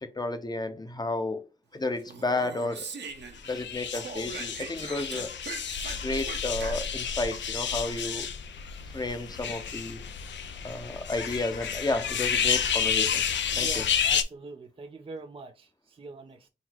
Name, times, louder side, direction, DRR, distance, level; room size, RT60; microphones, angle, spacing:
voice 1, 0.0-1.4 1.7-2.8 3.5-5.3 6.0-8.3 8.9-10.0 10.6-13.2 13.6-13.8, left 2 dB, 20° left, 0.7 m, -32 dB
Speech, 2.0-3.6 3.9-7.1, right 4 dB, 65° right, 0.8 m, -41 dB
sound 1, 3.4-14.2, left 7 dB, 70° left, 0.5 m, -30 dB
voice 2, 13.6-16.5, right 3 dB, 30° right, 0.4 m, -43 dB
3.9 x 2.0 x 4.4 m
cardioid pair, 70°, 20 cm